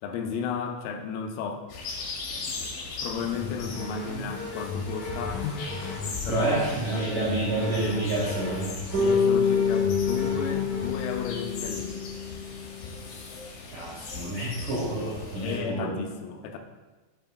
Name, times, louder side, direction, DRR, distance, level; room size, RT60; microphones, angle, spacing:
voice 1, 0.0-1.7 2.3-5.9 6.2-7.0 9.0-12.1 15.4-16.6, left 6 dB, 90° left, 4 dB, 3.4 m, -34 dB
sound 1, 1.7-15.6, left 4 dB, 75° left, 3.2 m, -39 dB
sound 2, 3.4-10.9, left 4 dB, 55° left, 3.0 m, -36 dB
voice 2, 6.3-8.7 13.7-15.9, right 2 dB, 80° right, -7 dB, 1.8 m, -28 dB
Bass guitar, 8.9-13.0, left 5 dB, 65° right, 2.0 m, -27 dB
8.7 x 5.4 x 2.3 m, 1.2 s
omnidirectional pair, 5.9 m